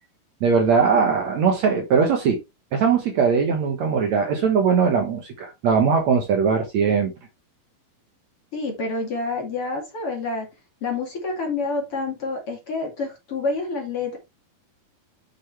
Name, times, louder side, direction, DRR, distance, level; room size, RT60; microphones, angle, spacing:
voice 1, 0.4-2.4 2.7-7.1, right 6 dB, 60° right, 2.1 m, -20 dB
voice 2, 8.5-10.5 10.8-14.2, left 3 dB, 40° left, 2.7 m, -28 dB
8.0 x 6.0 x 3.3 m
omnidirectional pair, 4.3 m